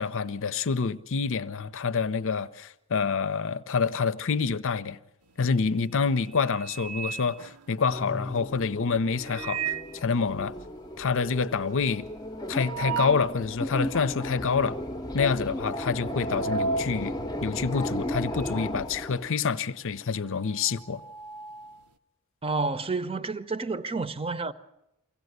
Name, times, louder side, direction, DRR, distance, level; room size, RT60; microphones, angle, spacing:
voice 1, 0.0-5.0 5.4-10.5 11.0-12.1 12.5-14.8 15.1-17.1 17.4-21.0, left 5 dB, 60° left, 0.7 m, -27 dB
sound 1, 5.3-5.7 6.1-8.1 9.1-10.1 10.5-10.6 10.8-10.9 11.3-13.4 13.9-14.0 14.8-15.1 15.4-18.7 18.9-21.9, right 5 dB, 75° right, 0.8 m, -36 dB
sound 2, 7.8-19.3, left 1 dB, 20° left, 0.7 m, -35 dB
voice 2, 22.4-24.5, right 3 dB, 25° right, 0.8 m, -30 dB
24.0 x 16.5 x 8.0 m
head